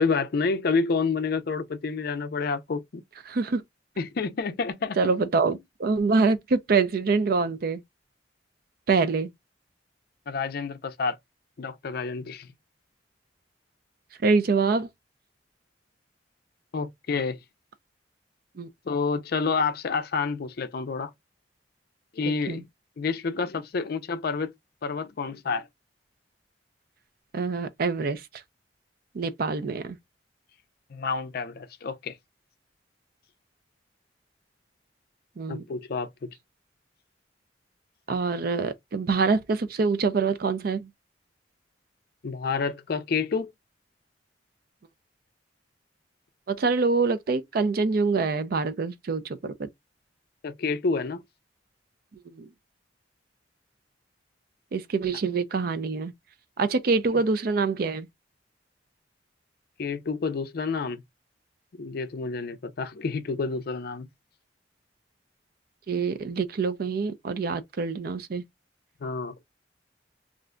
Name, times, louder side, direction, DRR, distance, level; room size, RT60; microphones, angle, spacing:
voice 1, 0.0-3.0 4.0-5.0 10.3-11.2 11.6-12.5 16.7-17.4 18.9-21.1 22.1-22.6 23.0-24.5 24.8-25.7 30.9-32.2 35.5-36.3 42.2-43.5 50.4-51.2 59.8-61.0 61.7-64.1 69.0-69.4, left 4 dB, 55° left, 0.4 m, -29 dB
voice 2, 3.3-3.6 5.0-7.8 8.9-9.3 14.2-14.9 18.6-18.7 22.5-22.6 27.3-28.2 29.1-30.0 35.4-35.6 38.1-40.9 46.5-49.7 52.3-52.5 54.7-56.1 56.6-58.1 65.9-68.4, right 4 dB, 55° right, 0.4 m, -25 dB
2.5 x 2.2 x 3.6 m
head